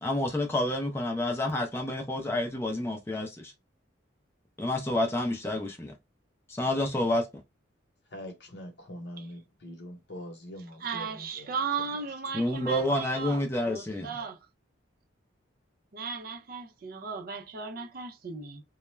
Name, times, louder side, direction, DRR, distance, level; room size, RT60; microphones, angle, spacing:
voice 1, 0.0-3.5 4.6-5.9 6.5-7.3 12.3-14.1, left 1 dB, 10° left, 0.4 m, -29 dB
voice 2, 8.1-12.0, left 1 dB, 60° left, 0.8 m, -44 dB
voice 3, 10.8-14.4 15.9-18.6, right 5 dB, 50° right, 0.4 m, -36 dB
2.2 x 2.0 x 3.1 m
head